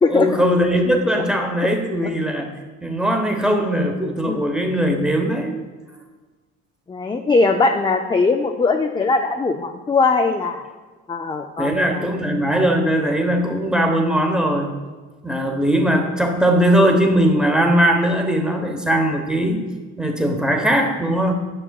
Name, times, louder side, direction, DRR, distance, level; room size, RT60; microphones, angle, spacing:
voice 1, 0.1-2.5 2.8-5.6 11.6-14.8 15.2-19.6 20.0-21.3, equal, 5° right, 3 dB, 1.0 m, -19 dB
voice 2, 6.9-10.6 11.1-12.0, left 3 dB, 15° left, 3 dB, 0.4 m, -20 dB
9.8 x 7.0 x 2.3 m, 1.3 s
cardioid pair, 90°, 30 cm